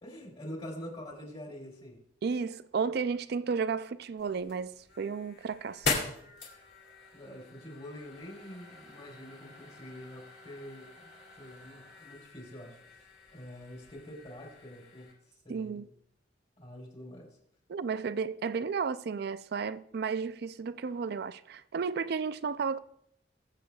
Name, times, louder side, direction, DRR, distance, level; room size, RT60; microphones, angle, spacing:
voice 1, 0.0-2.0 7.1-10.9 11.4-15.1 15.4-15.8 16.6-17.3, equal, 35° left, 3.5 m, -46 dB
voice 2, 2.2-5.9 15.5-15.9 17.7-22.8, right 5 dB, 60° right, 0.4 m, -33 dB
sound 1, 4.2-15.1, left 4 dB, 70° left, 2.8 m, -41 dB
21.0 x 7.7 x 2.3 m
head